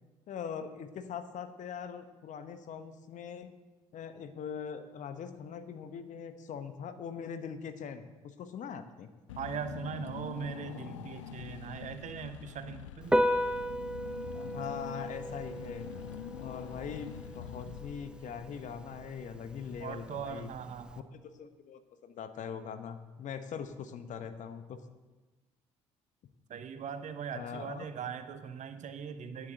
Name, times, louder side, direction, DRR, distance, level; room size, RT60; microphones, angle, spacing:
voice 1, 0.3-3.5 3.9-9.1 14.3-15.9 16.4-20.5 21.1-24.8 27.3-27.9, left 7 dB, 55° left, 10 dB, 1.0 m, -42 dB
Car / Engine, 9.3-18.5, left 12 dB, 80° left, 0.4 m, -45 dB
voice 2, 9.4-13.2 19.8-21.0 26.5-29.5, right 7 dB, 50° right, 10 dB, 0.9 m, -40 dB
Piano, 13.0-21.0, equal, 5° right, 0.7 m, -35 dB
9.4 x 7.8 x 7.7 m, 1.2 s
hypercardioid pair, 50°, 16 cm